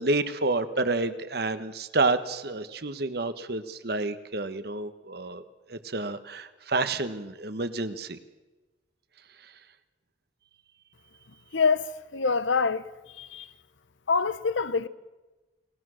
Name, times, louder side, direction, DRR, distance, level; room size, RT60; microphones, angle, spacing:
voice 1, 0.0-5.4 5.7-8.2, right 3 dB, 55° right, 1.2 m, -29 dB
voice 2, 11.5-13.5 14.1-14.9, left 4 dB, 90° left, 0.9 m, -26 dB
29.5 x 19.5 x 6.4 m
head